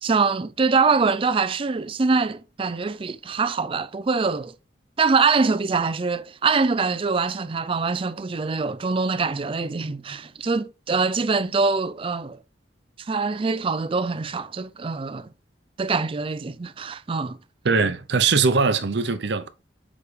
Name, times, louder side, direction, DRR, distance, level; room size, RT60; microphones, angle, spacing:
voice 1, 0.0-4.5 5.0-12.4 13.0-15.3 15.8-17.4, right 4 dB, 30° right, 0.4 m, -24 dB
voice 2, 17.6-19.5, right 4 dB, 65° right, 0.7 m, -21 dB
6.8 x 4.9 x 3.3 m
head